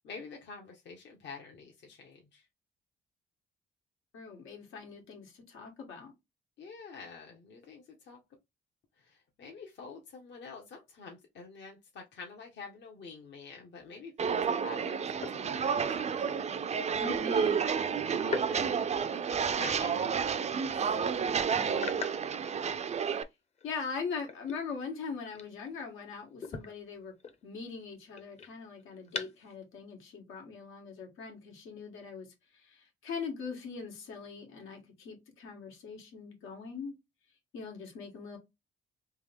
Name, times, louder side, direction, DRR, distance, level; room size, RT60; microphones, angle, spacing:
voice 1, 0.0-2.5 6.6-8.2 9.0-16.4 18.0-18.7 19.3-20.5, left 4 dB, 60° left, 1.1 m, -48 dB
voice 2, 4.1-6.1 17.0-17.7 21.5-22.0 23.6-27.1 27.4-32.3 32.5-36.9 37.5-38.4, left 5 dB, 85° left, 1.8 m, -41 dB
sound 1, 13.8-13.9 15.1-16.0 18.2-19.8 20.2-20.5 20.9-21.0 21.7-23.2 23.6-26.0 26.4-29.6, left 5 dB, 35° left, 0.8 m, -43 dB
Walk footsteps, 14.2-23.2, right 6 dB, 35° right, 0.5 m, -30 dB
3.6 x 2.8 x 3.4 m
cardioid pair, 90°, 20 cm